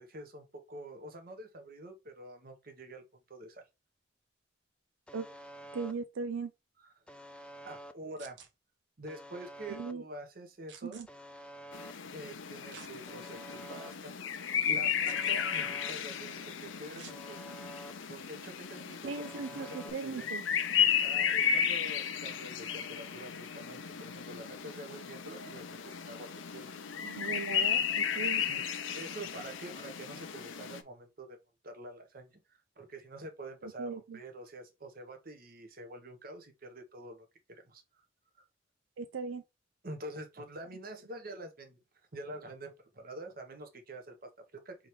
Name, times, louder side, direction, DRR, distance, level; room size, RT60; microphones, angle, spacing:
voice 1, 0.0-3.0 3.3-3.6 6.8-6.9 7.6-8.4 9.0-11.1 12.1-14.1 14.7-17.4 18.1-20.3 21.0-26.8 28.4-28.6 28.9-31.4 31.6-37.8 38.4-38.5 39.8-41.8 42.1-44.7, right 1 dB, 50° right, 1.0 m, -46 dB
Alarm, 5.1-5.9 7.1-7.9 9.1-9.9 11.1-11.9 13.1-13.9 15.1-15.9 17.1-17.9 19.1-19.9, equal, 5° left, 0.3 m, -49 dB
voice 2, 5.7-6.5 9.7-10.0 10.8-11.1 19.0-20.4 27.0-28.4 33.6-34.2 39.0-39.4, right 5 dB, 85° right, 0.4 m, -38 dB
sound 1, 8.2-8.5 10.7-11.1 12.7-12.9 13.5-13.6 15.0-15.4 17.0-17.2 18.8-19.0, right 7 dB, 65° right, 0.8 m, -51 dB
sound 2, 11.7-30.8, left 8 dB, 80° left, 0.6 m, -34 dB
4.4 x 3.7 x 3.1 m
head